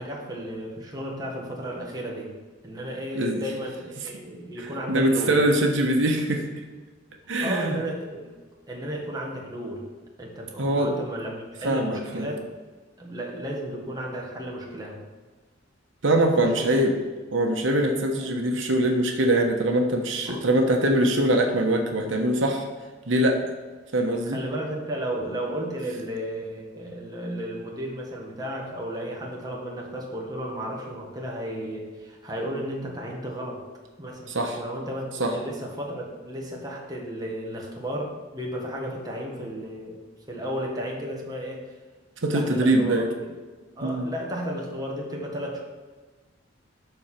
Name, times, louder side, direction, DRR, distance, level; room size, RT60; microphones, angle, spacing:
voice 1, 0.0-2.3 2.6-5.4 7.4-8.3 8.7-9.9 10.2-12.4 13.0-15.0 16.6-16.8 18.2-18.3 20.3-20.4 24.2-33.6 34.0-40.0 40.3-41.6 42.3-43.3 43.8-45.6, equal, 20° right, -2 dB, 1.6 m, -33 dB
voice 2, 4.9-6.5 7.3-7.7 10.6-10.9 11.6-12.3 16.0-16.9 17.3-22.7 23.1-23.4 23.9-24.4 34.3-34.6 35.2-35.3 42.2-43.1 43.8-44.1, right 1 dB, 85° right, 2 dB, 1.1 m, -23 dB
12.0 x 4.4 x 4.4 m, 1.3 s
head